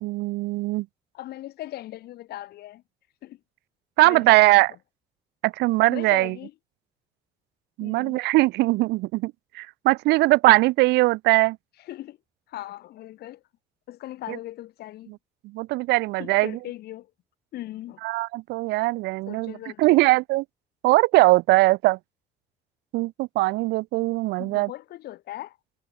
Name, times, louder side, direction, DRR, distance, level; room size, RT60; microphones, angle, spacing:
voice 1, 0.0-0.9 4.0-4.7 5.4-6.3 7.8-11.6 14.3-14.4 15.5-16.6 18.0-19.5 19.8-20.4 20.8-22.0 22.9-24.7, right 20 dB, 80° right, 0.5 m, -21 dB
voice 2, 1.1-2.8 3.2-3.4 4.0-4.6 5.9-6.5 7.8-8.2 11.8-12.2 12.5-13.4 13.9-15.1 16.2-17.1 17.5-18.0 19.3-20.0 24.4-25.6, left 15 dB, 70° left, 1.6 m, -39 dB
cardioid pair, 110°, 17 cm